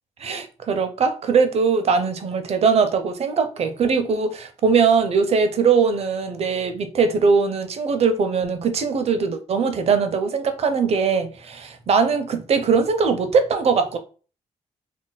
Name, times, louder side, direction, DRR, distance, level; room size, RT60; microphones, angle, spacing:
voice 1, 0.2-14.0, right 5 dB, 55° right, 0.5 m, -21 dB
2.4 x 2.1 x 3.9 m
cardioid pair, 100°, 13 cm